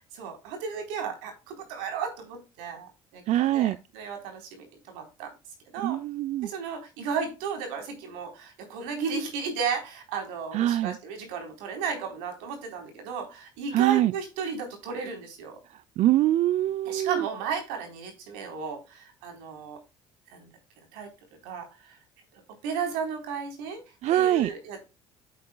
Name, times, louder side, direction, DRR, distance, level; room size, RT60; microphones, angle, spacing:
voice 1, 0.1-5.3 5.7-6.0 6.4-15.6 16.8-19.8 20.3-20.5 20.9-21.1 21.4-22.0 22.6-23.8 24.1-24.8, right 6 dB, 85° right, 3.9 m, -34 dB
voice 2, 3.3-3.8 5.8-6.5 10.5-11.0 13.7-14.1 15.7-17.3 24.0-24.5, right 13 dB, 60° right, 0.4 m, -24 dB
9.4 x 8.4 x 2.3 m
supercardioid pair, 75°, 14 cm